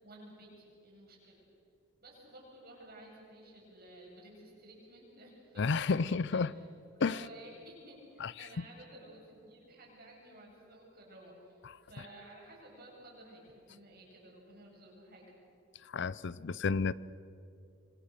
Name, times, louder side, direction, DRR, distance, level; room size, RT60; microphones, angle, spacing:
voice 1, 0.0-1.4 2.0-6.7 7.0-15.3, right 1 dB, 50° right, -2 dB, 7.9 m, -54 dB
voice 2, 5.6-6.5 7.0-7.2 8.2-8.3 15.9-16.9, left 4 dB, 60° left, 19 dB, 0.5 m, -30 dB
26.5 x 25.0 x 6.7 m, 2.6 s
head